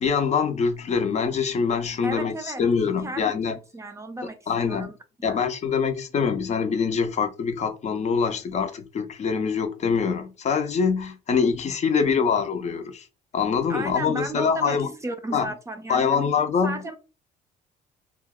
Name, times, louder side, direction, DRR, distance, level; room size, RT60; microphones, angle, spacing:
voice 1, 0.0-3.6 4.5-4.9 5.2-13.1 13.3-14.9 15.3-15.5 15.9-16.8, left 6 dB, 45° left, 0.6 m, -24 dB
voice 2, 2.0-4.4 4.6-5.4 13.7-16.3 16.6-17.0, right 2 dB, 15° right, 0.4 m, -34 dB
2.6 x 2.3 x 3.5 m
cardioid pair, 110°, 17 cm